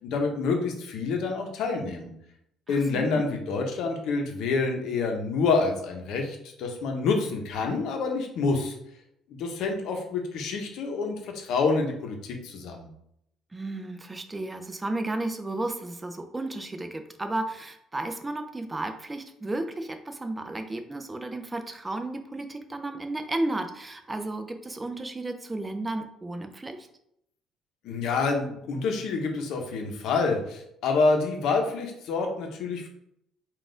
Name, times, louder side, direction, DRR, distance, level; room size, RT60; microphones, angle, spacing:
voice 1, 0.0-2.1 2.7-8.7 9.3-12.9 27.8-32.9, left 4 dB, 65° left, 3 dB, 0.8 m, -27 dB
voice 2, 2.7-3.2 13.5-26.8, right 2 dB, 10° right, 6 dB, 0.3 m, -33 dB
3.9 x 2.4 x 3.7 m, 0.75 s
cardioid pair, 160°, 0 cm